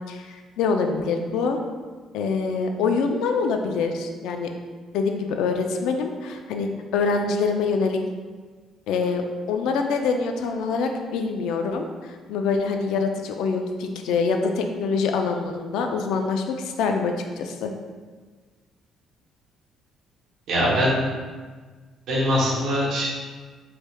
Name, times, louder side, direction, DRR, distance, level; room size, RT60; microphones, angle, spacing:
voice 1, 0.1-1.6 2.1-4.5 4.9-8.0 8.9-17.7, left 4 dB, 90° left, 4 dB, 0.3 m, -25 dB
voice 2, 20.5-21.0 22.1-23.1, equal, 55° right, -6 dB, 0.9 m, -22 dB
3.2 x 3.2 x 2.2 m, 1.5 s
cardioid pair, 180°, 0 cm